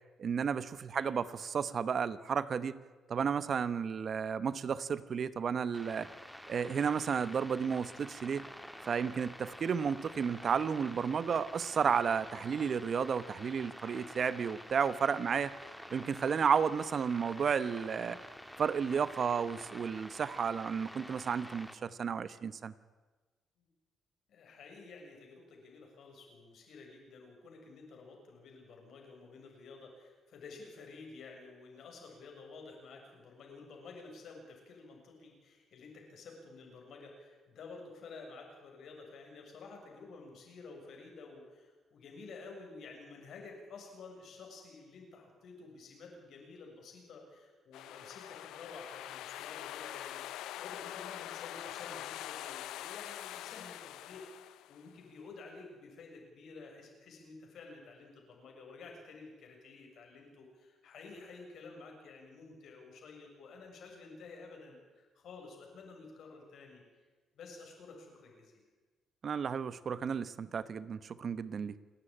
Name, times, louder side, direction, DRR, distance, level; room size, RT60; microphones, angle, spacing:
voice 1, 0.2-2.8 3.1-6.1 6.5-8.5 8.8-15.6 15.9-18.2 18.6-22.7 69.2-71.8, right 6 dB, 50° right, 16 dB, 0.9 m, -32 dB
sound 1, 5.7-21.7, equal, ahead, 1.9 m, -49 dB
voice 2, 24.3-66.8 67.3-68.6, left 4 dB, 70° left, 1 dB, 6.9 m, -51 dB
sound 2, 47.7-55.0, left 14 dB, 90° left, 0.5 m, -44 dB
28.0 x 10.0 x 10.0 m, 1.3 s
cardioid pair, 90°, 0 cm